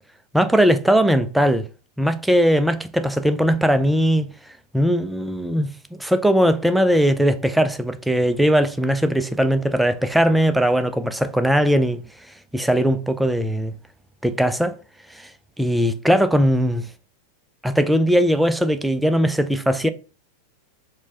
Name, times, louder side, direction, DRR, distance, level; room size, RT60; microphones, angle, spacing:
voice 1, 0.3-1.6 2.0-4.3 4.7-12.0 12.5-13.7 14.2-14.8 15.1-15.3 15.6-16.9 17.6-19.9, equal, ahead, 0.3 m, -19 dB
4.4 x 2.2 x 2.8 m
figure-of-eight pair, 90°, 0 cm